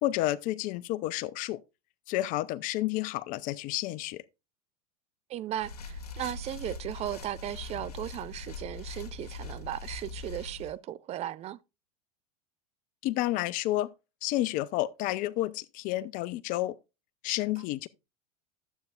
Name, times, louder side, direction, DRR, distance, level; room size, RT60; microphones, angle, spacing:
voice 1, 0.0-1.6 2.1-4.2 13.0-13.9 14.2-16.8 17.2-17.9, left 16 dB, 45° left, 0.4 m, -30 dB
voice 2, 5.3-11.6, right 12 dB, 35° right, 0.5 m, -36 dB
sound 1, 5.5-10.7, left 3 dB, 80° left, 1.6 m, -41 dB
12.0 x 7.9 x 2.3 m
hypercardioid pair, 85°, 20 cm